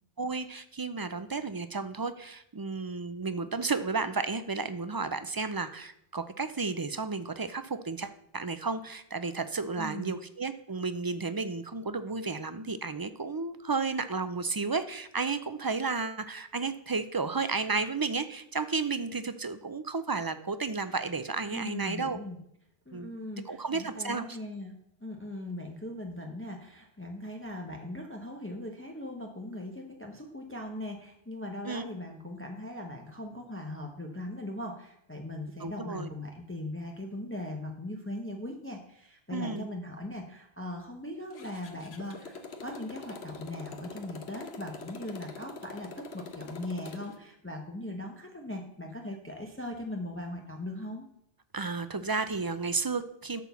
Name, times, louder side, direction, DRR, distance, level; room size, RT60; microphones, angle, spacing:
voice 1, 0.2-22.2 22.9-23.1 23.5-24.4 31.6-31.8 35.6-36.1 39.3-39.7 51.5-53.4, right 4 dB, 30° right, 11 dB, 0.4 m, -32 dB
voice 2, 9.8-10.2 21.5-22.4 22.9-51.1, left 1 dB, 15° left, 2 dB, 1.0 m, -39 dB
Motorcycle, 41.3-47.2, left 4 dB, 85° left, 1.3 m, -44 dB
12.5 x 4.6 x 6.9 m, 0.76 s
omnidirectional pair, 1.0 m